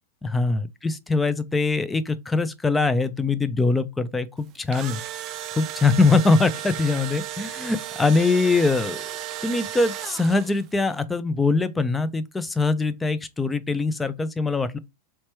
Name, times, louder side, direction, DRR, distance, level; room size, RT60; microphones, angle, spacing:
voice 1, 0.2-5.0 5.6-9.1 9.4-14.8, left 3 dB, 10° left, 0.5 m, -22 dB
Engine / Drill, 4.5-10.7, right 12 dB, 45° right, 0.4 m, -34 dB
3.2 x 2.9 x 3.3 m
hypercardioid pair, 105°, 0 cm